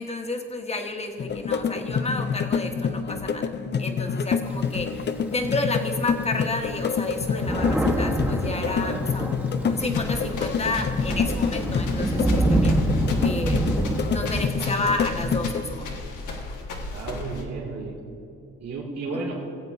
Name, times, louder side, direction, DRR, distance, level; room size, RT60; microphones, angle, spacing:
voice 1, 0.0-3.5 3.8-12.7 13.2-13.6 14.1-16.0 19.1-19.2, left 2 dB, 20° left, 4 dB, 1.3 m, -31 dB
sound 1, 1.2-15.6, left 6 dB, 35° left, 0.6 m, -27 dB
Thunder, 4.5-5.7 6.3-6.4 6.6-14.4, right 1 dB, 5° right, 1.2 m, -26 dB
voice 2, 8.6-9.0 16.9-18.0 18.6-19.4, right 3 dB, 60° right, -3 dB, 2.7 m, -33 dB
sound 2, 9.8-17.4, left 2 dB, 75° left, 1.5 m, -36 dB
18.5 x 7.9 x 3.5 m, 2.7 s
cardioid pair, 90°, 30 cm